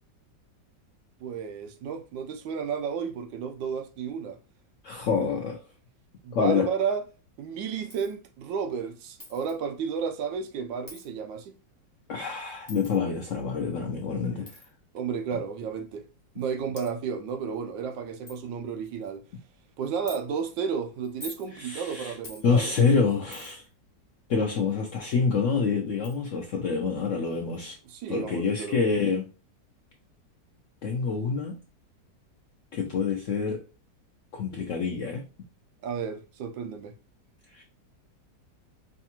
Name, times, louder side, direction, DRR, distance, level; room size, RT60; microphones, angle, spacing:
voice 1, 1.2-4.4 6.2-7.0 7.4-11.5 14.9-16.1 16.3-19.2 19.8-22.7 27.9-28.8 35.8-36.9, right 6 dB, 90° right, 1.3 m, -32 dB
voice 2, 4.8-5.6 6.3-6.7 12.1-14.6 21.5-22.2 22.4-23.6 24.3-27.8 28.1-29.3 30.8-31.6 32.7-33.6 34.3-35.2 37.5-37.6, left 5 dB, 75° left, 0.7 m, -27 dB
Coin (dropping), 7.9-8.2 9.2-9.6 10.9-11.1 12.7-13.0 14.5-14.7 15.6-15.7 16.4-16.5 16.8-16.9 17.5-17.6 17.9-18.0 18.3-18.4 18.8-19.2 20.1-20.2 21.0-21.5 22.2-22.5 23.3-23.7 25.3-25.4 26.0-26.2, left 2 dB, 20° left, 0.5 m, -44 dB
5.1 x 2.4 x 2.9 m
omnidirectional pair, 2.0 m